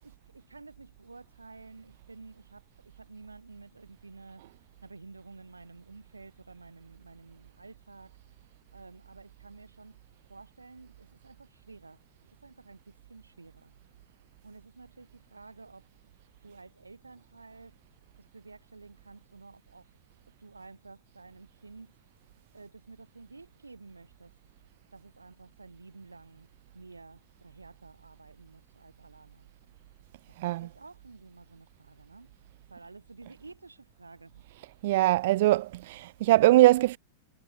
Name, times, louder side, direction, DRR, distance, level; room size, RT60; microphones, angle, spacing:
voice 1, 0.0-8.2 8.7-10.0 10.3-12.0 12.4-13.7 14.4-15.9 16.4-17.7 18.2-20.0 20.4-22.0 22.5-24.4 24.9-26.5 26.7-29.5 30.3-32.3 32.7-34.4, right 3 dB, 80° right, 5.0 m, -51 dB
voice 2, 30.4-30.7 34.8-37.0, right 17 dB, 55° right, 0.6 m, -22 dB
figure-of-eight pair, 90°, 0 cm